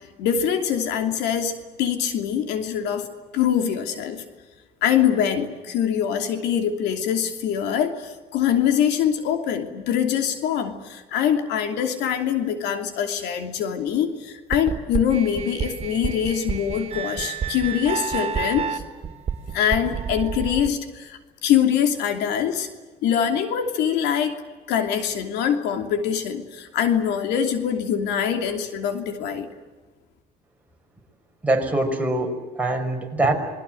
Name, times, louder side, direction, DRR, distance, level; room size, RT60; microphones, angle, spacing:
voice 1, 0.0-3.1 3.3-4.2 4.8-18.8 19.5-22.7 23.0-24.4 24.7-29.5, left 8 dB, 85° left, 7 dB, 2.9 m, -24 dB
sound 1, 14.5-20.7, right 7 dB, 40° right, 2.7 m, -29 dB
voice 2, 31.4-33.3, right 2 dB, 10° right, 1 dB, 5.7 m, -23 dB
28.0 x 21.0 x 7.8 m, 1.3 s
cardioid pair, 110°, 17 cm